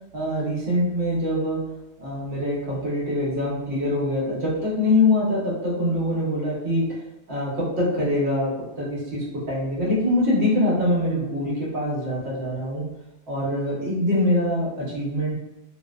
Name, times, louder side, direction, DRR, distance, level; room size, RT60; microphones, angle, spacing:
voice 1, 0.1-1.7 2.0-7.0 7.3-12.9 13.3-15.3, left 1 dB, 65° right, -5 dB, 1.1 m, -24 dB
2.6 x 2.0 x 2.3 m, 0.91 s
omnidirectional pair, 1.2 m